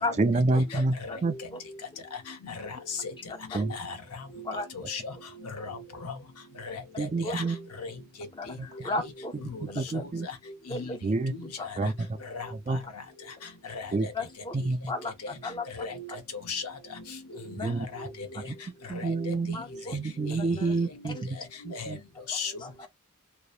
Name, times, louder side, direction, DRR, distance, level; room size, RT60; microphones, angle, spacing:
voice 1, 0.2-1.0 1.2-1.4 3.5-3.7 7.0-7.6 8.6-8.7 9.6-10.3 11.0-11.3 11.8-12.2 12.5-12.8 13.9-14.1 14.5-14.8 17.6-17.9 18.9-19.6 19.9-21.4 21.6-22.0, right 3 dB, 30° right, 0.4 m, -28 dB
voice 2, 0.7-1.2 1.5-1.6 3.3-3.4 4.4-4.7 7.2-7.4 8.3-9.3 9.7-10.0 10.7-11.0 11.6-11.7 14.1-14.6 14.9-15.6 17.6-17.8 19.5-20.0 20.3-20.7 21.0-21.2 22.6-22.9, left 2 dB, 20° left, 0.5 m, -35 dB
voice 3, 2.4-2.8 3.0-3.1 3.7-4.0 4.5-4.6 4.9-5.1 5.6-6.1 6.6-7.4 7.8-7.9 9.5-9.6 9.9-10.1 10.7-10.9 12.3-12.5 13.7-13.8 15.7-16.0 16.5-16.6 17.6-18.1 18.9-19.3 21.7-22.0 22.3-22.5, left 5 dB, 80° left, 0.8 m, -36 dB
2.8 x 2.0 x 2.4 m
head